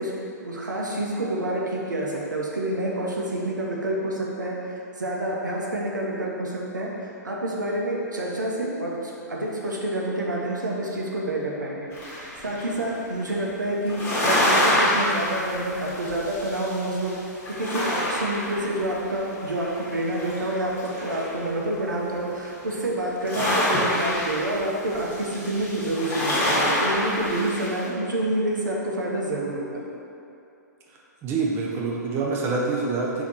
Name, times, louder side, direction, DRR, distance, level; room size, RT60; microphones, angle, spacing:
voice 1, 0.0-17.1 17.6-29.8, right 1 dB, 85° right, -2 dB, 0.7 m, -28 dB
sound 1, 11.9-12.7 13.9-17.2 17.4-19.0 19.4-21.4 22.5-22.7 23.1-27.8, left 1 dB, 20° left, 1.2 m, -26 dB
voice 2, 31.2-33.2, right 3 dB, 25° right, -2 dB, 0.6 m, -26 dB
4.1 x 2.9 x 4.1 m, 2.7 s
figure-of-eight pair, 120°, 10 cm